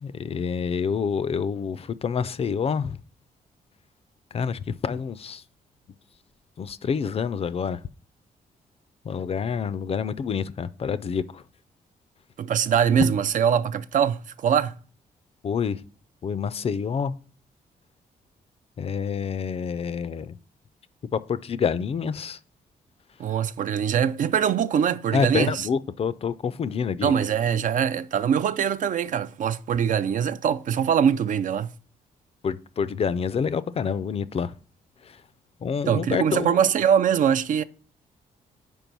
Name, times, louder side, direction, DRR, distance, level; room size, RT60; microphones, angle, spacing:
voice 1, 0.0-3.0 4.3-5.4 6.6-7.8 9.1-11.4 13.0-13.1 15.4-15.8 16.2-17.1 18.8-20.4 21.1-22.4 25.1-27.1 32.4-34.5 35.0-35.2 35.6-36.6, left 6 dB, 40° left, 0.4 m, -27 dB
voice 2, 12.4-14.7 23.2-25.7 27.0-31.7 35.9-37.6, right 8 dB, 60° right, 0.4 m, -23 dB
5.3 x 4.5 x 5.9 m
cardioid pair, 110°, 15 cm